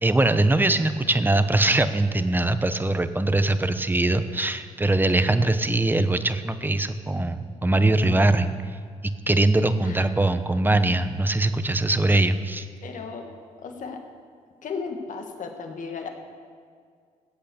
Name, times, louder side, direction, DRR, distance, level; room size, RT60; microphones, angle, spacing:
voice 1, 0.0-8.6 9.0-12.7, right 2 dB, 15° right, 10 dB, 0.9 m, -22 dB
voice 2, 12.8-14.0 14.6-16.1, left 5 dB, 65° left, 4 dB, 1.8 m, -35 dB
16.0 x 8.4 x 7.0 m, 2.1 s
cardioid pair, 65°, 14 cm